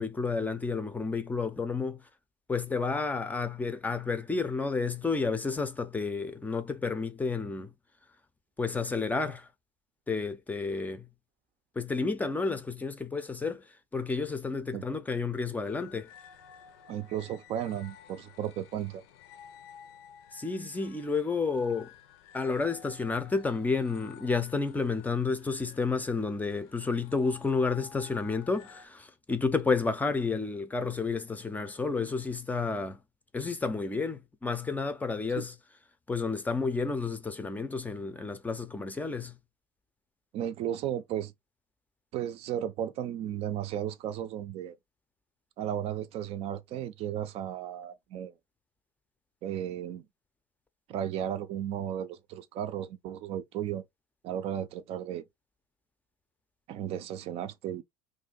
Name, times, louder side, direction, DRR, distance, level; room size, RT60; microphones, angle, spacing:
voice 1, 0.0-2.0 2.5-7.7 8.6-9.5 10.1-11.1 11.8-16.1 20.3-21.9 22.3-33.0 33.3-35.5 36.1-39.4, left 4 dB, 10° left, 0.5 m, -31 dB
sound 1, 15.6-28.9, left 8 dB, 80° left, 0.7 m, -53 dB
voice 2, 16.9-19.0 35.4-35.5 40.3-41.3 42.1-44.8 45.6-48.3 49.4-50.0 50.9-53.8 54.2-55.2 56.7-57.8, right 10 dB, 50° right, 0.5 m, -34 dB
2.7 x 2.6 x 3.8 m
supercardioid pair, 120°, 13 cm